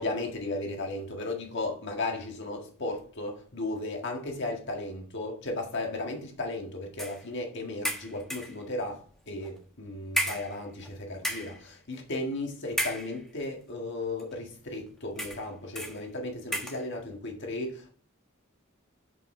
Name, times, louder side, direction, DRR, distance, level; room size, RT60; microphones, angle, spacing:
voice 1, 0.0-17.9, left 2 dB, 60° left, 1.7 m, -35 dB
sound 1, 7.0-7.2 7.8-8.6 9.4-9.6 10.1-10.9 11.2-11.6 12.7-13.4 14.2-14.3 15.2-15.5 15.8-16.0 16.5-16.9, equal, ahead, 1.2 m, -33 dB
6.9 x 5.4 x 3.8 m
head